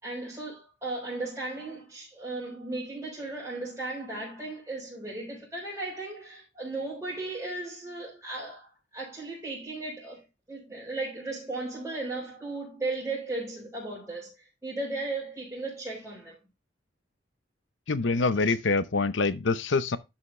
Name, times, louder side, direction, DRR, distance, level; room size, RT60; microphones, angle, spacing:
voice 1, 0.0-10.2 10.5-16.4, right 2 dB, 15° right, 4.1 m, -36 dB
voice 2, 17.9-20.0, left 3 dB, 80° left, 0.8 m, -25 dB
11.0 x 5.7 x 3.2 m
head